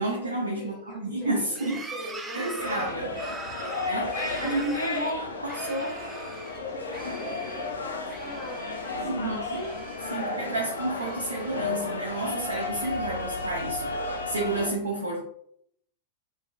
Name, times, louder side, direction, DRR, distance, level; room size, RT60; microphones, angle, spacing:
voice 1, 0.0-1.8 2.3-3.2 3.9-4.1 4.4-5.9 9.0-9.7 10.0-15.2, right 2 dB, 75° right, -2 dB, 0.5 m, -31 dB
voice 2, 0.5-3.8 4.0-4.9 5.4-5.5 5.9-6.1 6.5-9.7 10.1-12.1, left 1 dB, 30° left, -4 dB, 1.4 m, -43 dB
sound 1, 1.5-6.6 6.9-7.7 8.1-9.1 9.3-10.5 10.9-11.9 12.4-13.4, right 3 dB, 15° right, 0.4 m, -43 dB
sound 2, 2.6-14.7, left 3 dB, 70° left, 0.5 m, -33 dB
3.1 x 2.9 x 2.2 m, 0.69 s
figure-of-eight pair, 90°, 0 cm